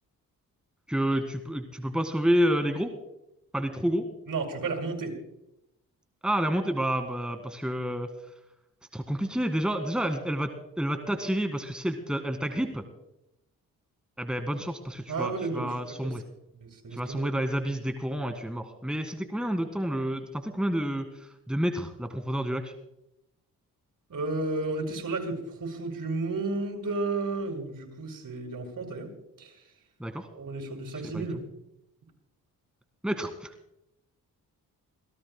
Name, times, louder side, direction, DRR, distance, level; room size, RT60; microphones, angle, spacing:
voice 1, 0.9-2.9 3.5-4.1 6.2-8.1 8.9-10.5 10.8-12.8 14.2-16.2 16.9-21.1 21.5-22.7 30.0-30.3 31.1-31.3 33.0-33.5, equal, ahead, 7 dB, 1.8 m, -29 dB
voice 2, 4.3-5.2 15.1-16.1 16.6-17.3 24.1-29.1 29.4-29.6 30.3-31.4, right 3 dB, 55° right, 1 dB, 6.1 m, -32 dB
28.5 x 17.5 x 2.2 m, 0.84 s
supercardioid pair, 55°, 38 cm